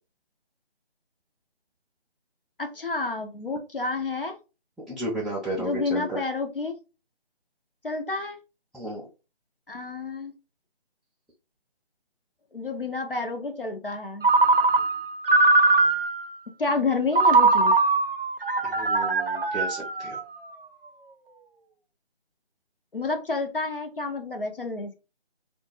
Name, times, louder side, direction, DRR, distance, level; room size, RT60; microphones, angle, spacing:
voice 1, 2.6-4.3 5.6-6.8 7.8-8.4 9.7-10.3 12.5-14.3 16.6-17.7 22.9-24.9, left 3 dB, 55° left, 0.6 m, -29 dB
voice 2, 4.9-6.2 8.7-9.1 18.6-20.2, right 1 dB, ahead, 0.4 m, -33 dB
Ringtone, 14.2-16.3 17.1-20.5, right 3 dB, 60° right, 0.6 m, -21 dB
2.5 x 2.1 x 3.1 m
figure-of-eight pair, 160°, 33 cm